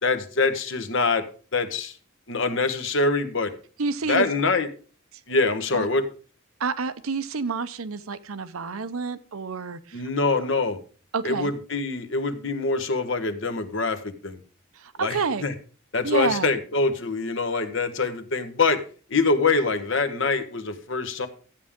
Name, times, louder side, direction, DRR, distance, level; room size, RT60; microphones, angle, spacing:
voice 1, 0.0-1.3 1.5-2.0 2.3-3.5 4.1-4.7 5.3-6.1 9.9-10.8 11.2-14.4 15.0-15.5 15.9-18.8 19.1-21.3, left 3 dB, 60° left, 9 dB, 1.2 m, -24 dB
voice 2, 3.8-4.3 5.7-5.9 6.6-10.0 11.1-11.5 14.7-15.4 16.0-16.5, right 4 dB, 85° right, 12 dB, 0.7 m, -28 dB
13.0 x 8.6 x 3.6 m, 0.40 s
head